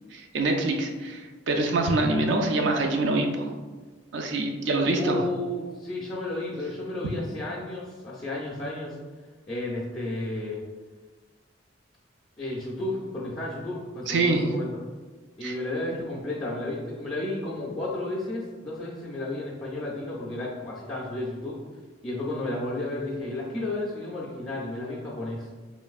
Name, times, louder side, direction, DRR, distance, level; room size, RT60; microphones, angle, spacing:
voice 1, 0.1-3.5 4.1-5.2 14.1-14.5 15.4-15.5, right 2 dB, 65° right, 3 dB, 0.4 m, -25 dB
voice 2, 4.9-9.0 9.5-10.6 12.4-14.7 15.4-21.6 22.0-25.5, left 2 dB, 20° left, -7 dB, 0.4 m, -32 dB
3.1 x 2.5 x 2.3 m, 1.3 s
head